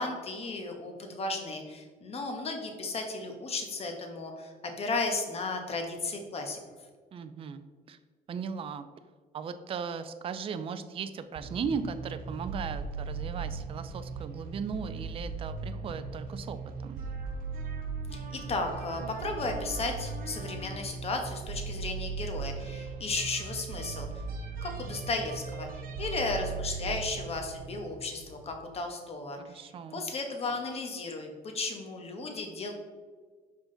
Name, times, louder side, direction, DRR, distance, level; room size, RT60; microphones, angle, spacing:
voice 1, 0.0-6.6 18.1-24.1 24.6-31.3 31.5-32.7, left 3 dB, 35° left, 4 dB, 1.1 m, -34 dB
voice 2, 7.1-8.0 8.3-8.9 9.3-17.0 29.4-30.0, right 6 dB, 35° right, 10 dB, 0.4 m, -37 dB
sound 1, 11.4-28.7, right 4 dB, 60° right, 0.8 m, -38 dB
5.7 x 4.7 x 3.8 m, 1.5 s
cardioid pair, 110°, 17 cm